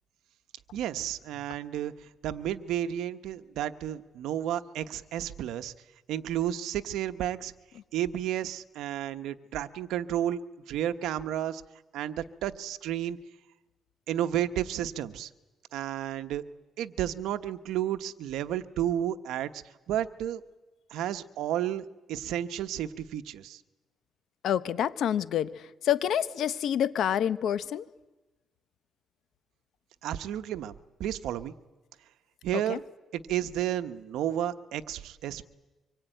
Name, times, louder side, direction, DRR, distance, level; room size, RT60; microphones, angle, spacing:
voice 1, 0.7-1.9 2.2-5.7 6.1-7.5 7.9-10.4 10.7-11.6 11.9-13.2 14.1-15.3 15.7-16.4 16.8-20.4 20.9-23.6 30.0-30.7 31.0-31.5 32.4-32.8 33.1-35.4, right 11 dB, 85° right, 9 dB, 1.0 m, -32 dB
voice 2, 24.4-25.5 25.8-27.8 32.7-32.8, left 10 dB, 70° left, 14 dB, 0.9 m, -27 dB
25.0 x 22.5 x 9.1 m, 1.1 s
cardioid pair, 90°, 0 cm